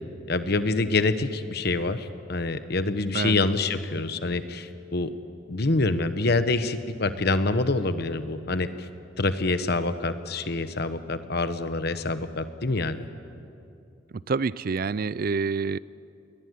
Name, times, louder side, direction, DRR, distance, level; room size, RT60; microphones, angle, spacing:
voice 1, 0.3-5.1 5.5-8.9 9.2-13.1, left 3 dB, 60° left, 11 dB, 1.1 m, -26 dB
voice 2, 14.3-15.8, right 4 dB, 55° right, 20 dB, 0.5 m, -27 dB
21.0 x 20.0 x 9.4 m, 2.6 s
head